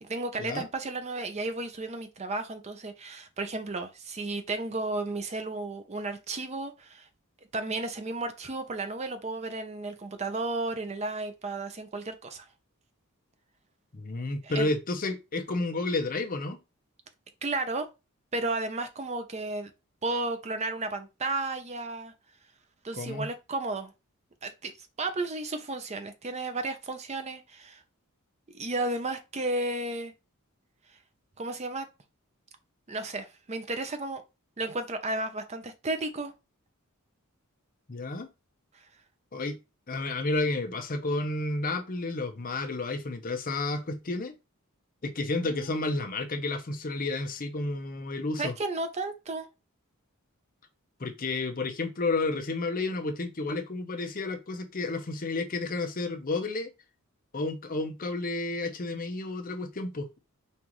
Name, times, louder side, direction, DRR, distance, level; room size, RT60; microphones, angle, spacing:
voice 1, 0.0-7.1 7.5-12.4 14.4-14.7 17.4-17.9 18.3-19.7 20.0-22.1 22.8-23.9 24.4-27.8 28.5-30.1 31.4-31.9 32.9-34.2 34.6-36.3 45.4-45.7 48.4-49.5, right 2 dB, 30° right, 0.6 m, -33 dB
voice 2, 13.9-16.6 22.9-23.3 37.9-38.3 39.3-39.6 39.9-44.3 45.0-48.5 51.0-56.7 57.3-60.1, left 2 dB, 40° left, 0.7 m, -31 dB
5.3 x 2.5 x 3.0 m
head